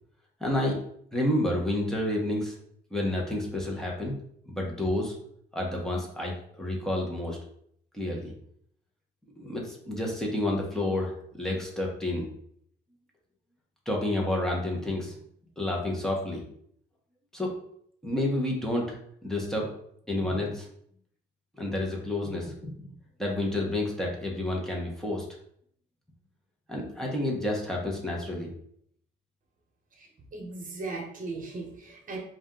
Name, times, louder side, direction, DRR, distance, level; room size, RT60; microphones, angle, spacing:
voice 1, 0.4-0.8 1.1-2.5 2.9-4.1 4.5-5.1 5.5-7.4 7.9-8.3 9.4-12.3 13.8-15.2 15.6-16.4 17.3-17.5 18.0-19.0 19.2-19.7 20.1-20.7 21.6-22.7 23.2-25.2 26.7-28.5, left 1 dB, ahead, -2 dB, 1.2 m, -29 dB
voice 2, 30.3-32.2, right 3 dB, 40° right, 0 dB, 1.3 m, -37 dB
4.1 x 2.7 x 3.8 m, 0.67 s
cardioid pair, 90°, 20 cm